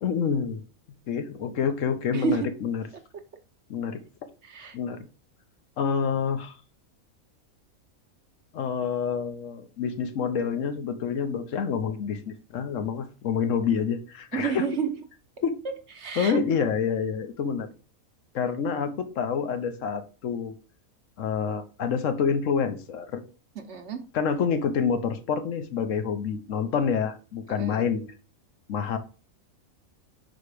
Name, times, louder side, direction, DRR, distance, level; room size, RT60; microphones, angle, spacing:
voice 1, 0.0-0.6 1.1-2.9 3.7-4.0 4.7-5.1 5.8-6.5 8.5-14.6 15.4-15.6 16.2-17.7 18.3-20.5 21.2-23.2 24.1-28.1 28.7-29.0, left 6 dB, 65° left, 9 dB, 1.2 m, -27 dB
voice 2, 2.1-2.5 4.4-4.8 14.3-14.9 16.0-16.7 23.6-24.0 27.5-27.8, right 6 dB, 55° right, 7 dB, 1.1 m, -30 dB
5.6 x 4.3 x 4.8 m, 0.35 s
omnidirectional pair, 1.5 m